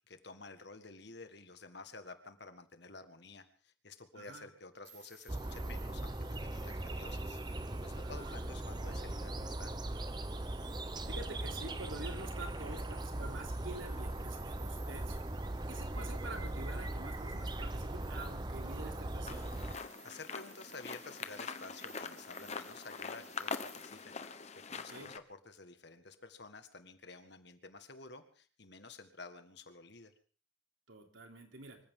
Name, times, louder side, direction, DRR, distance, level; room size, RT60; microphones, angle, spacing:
voice 1, 0.1-7.4 7.8-9.7 19.7-24.2 24.7-30.1, left 3 dB, 55° left, 9 dB, 1.8 m, -52 dB
voice 2, 4.1-4.5 7.9-8.4 11.0-15.3 15.7-19.7 24.7-25.1 30.9-31.8, right 2 dB, 75° right, 3 dB, 3.4 m, -48 dB
sound 1, 4.8-24.0, right 6 dB, 50° right, 5.0 m, -60 dB
sound 2, 5.3-19.7, right 1 dB, 20° right, 0.8 m, -39 dB
sound 3, 19.3-25.2, left 5 dB, 35° left, 1.1 m, -44 dB
25.0 x 15.0 x 3.8 m, 0.40 s
head